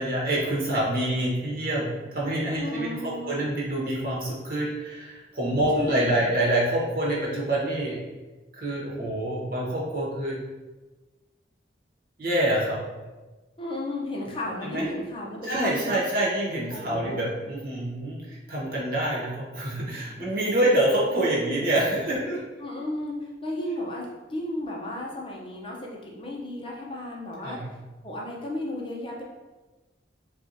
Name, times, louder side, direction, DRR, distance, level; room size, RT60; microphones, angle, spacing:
voice 1, 0.0-8.0 8.5-10.4 12.2-12.8 14.6-14.9 15.4-22.4 27.4-27.7, right 1 dB, 50° right, -4 dB, 1.2 m, -26 dB
voice 2, 2.6-3.5 5.7-6.3 13.6-16.0 16.7-17.2 22.6-27.6 28.0-29.2, left 1 dB, 30° left, -2 dB, 0.7 m, -34 dB
6.0 x 2.4 x 2.7 m, 1.2 s
head